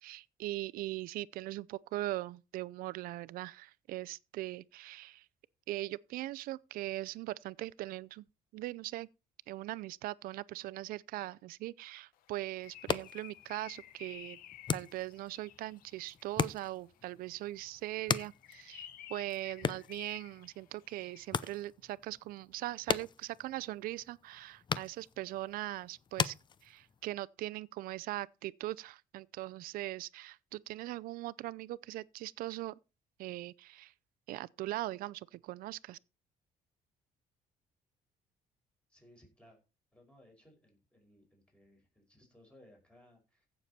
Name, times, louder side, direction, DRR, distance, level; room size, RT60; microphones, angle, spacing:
voice 1, 0.0-5.3 5.7-8.2 8.5-9.1 9.5-14.4 14.7-26.3 26.6-32.8 33.2-33.9 34.3-36.0, right 16 dB, 80° right, 0.5 m, -40 dB
Bird, 12.2-16.3 17.9-21.5, left 12 dB, 80° left, 1.1 m, -53 dB
sound 1, 12.6-27.1, left 6 dB, 30° left, 0.6 m, -40 dB
voice 2, 38.9-39.6 39.9-43.5, left 1 dB, 5° left, 5.2 m, -62 dB
15.5 x 6.8 x 4.3 m
cardioid pair, 125°, 15 cm